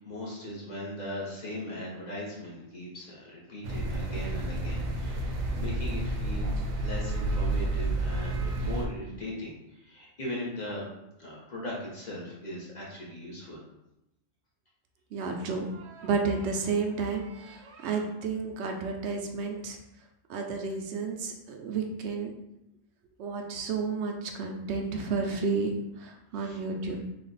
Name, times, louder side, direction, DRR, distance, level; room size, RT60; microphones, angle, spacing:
voice 1, 0.0-10.9 11.2-13.6 26.3-26.6, left 1 dB, 35° left, -5 dB, 1.0 m, -39 dB
sound 1, 3.6-8.9, right 2 dB, 85° right, 1.0 m, -30 dB
voice 2, 15.1-19.8 20.3-22.3 23.2-25.7 26.0-27.1, right 4 dB, 65° right, 3 dB, 0.8 m, -31 dB
3.3 x 2.4 x 4.0 m, 0.87 s
omnidirectional pair, 1.4 m